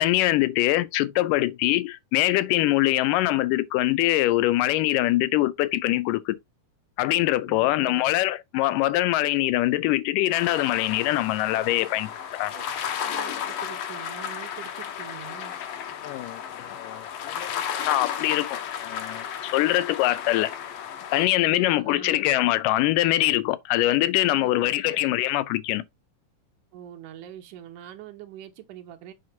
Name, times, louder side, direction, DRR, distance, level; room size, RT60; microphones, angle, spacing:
voice 1, 0.0-6.4 7.0-12.5 16.0-20.5 21.1-25.8, left 16 dB, 85° left, 2.2 m, -23 dB
voice 2, 7.5-8.1 12.5-12.6 13.0-15.5 21.5-22.2 24.3-25.0 26.7-29.1, right 11 dB, 75° right, 2.5 m, -43 dB
sound 1, 10.3-21.3, left 8 dB, 65° left, 1.7 m, -34 dB
7.7 x 2.7 x 5.8 m
omnidirectional pair, 3.7 m